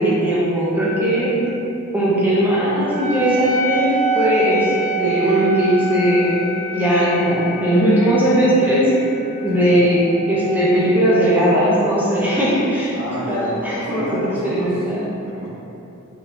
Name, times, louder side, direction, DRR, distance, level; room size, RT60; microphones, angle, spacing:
voice 1, 0.0-1.3 1.9-6.4 6.7-8.9 9.4-10.0 10.3-12.9 13.3-15.1, equal, 10° right, -8 dB, 0.5 m, -18 dB
Wind instrument woodwind instrument, 2.9-11.8, right 2 dB, 40° left, 1.0 m, -27 dB
voice 2, 12.9-14.8 15.3-15.5, equal, 85° left, -5 dB, 0.7 m, -29 dB
3.4 x 2.8 x 2.5 m, 3.0 s
head